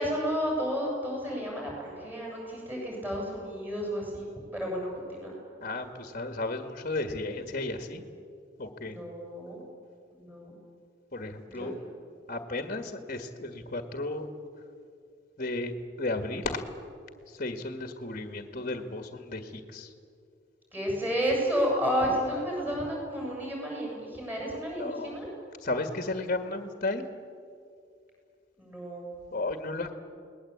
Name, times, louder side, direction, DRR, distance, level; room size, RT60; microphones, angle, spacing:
voice 1, 0.0-5.3 8.8-9.6 10.1-10.6 11.5-11.8 20.7-25.3 28.6-29.0, equal, 10° right, -3 dB, 7.9 m, -31 dB
voice 2, 5.6-8.0 8.6-9.0 11.1-11.7 12.3-14.2 15.4-16.6 17.3-19.9 24.8-25.2 25.6-27.1 29.3-29.9, left 2 dB, 40° left, 7 dB, 1.8 m, -34 dB
29.5 x 20.0 x 8.6 m, 2.4 s
head